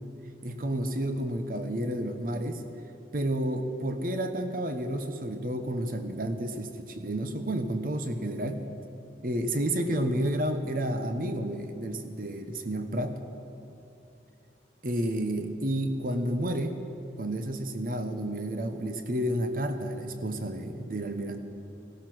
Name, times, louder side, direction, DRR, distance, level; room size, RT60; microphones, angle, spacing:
voice 1, 0.4-2.6 3.1-8.6 9.2-13.2 14.8-16.8 17.2-21.4, right 1 dB, 50° right, 7 dB, 1.1 m, -30 dB
17.0 x 13.5 x 6.2 m, 2.8 s
head